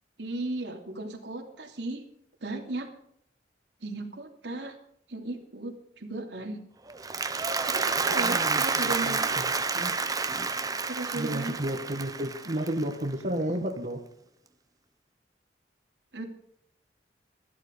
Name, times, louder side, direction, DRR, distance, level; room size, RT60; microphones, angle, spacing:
voice 1, 0.2-2.0 2.4-2.9 3.8-4.7 5.1-6.6 7.6-9.4 10.9-11.6 16.1-16.2, right 2 dB, 80° right, 2 dB, 2.8 m, -36 dB
Applause, 6.9-13.2, right 4 dB, 20° right, 1.0 m, -29 dB
voice 2, 8.0-9.9 11.1-14.0, right 1 dB, 40° right, 3 dB, 1.5 m, -33 dB
14.5 x 12.5 x 5.3 m, 0.71 s
head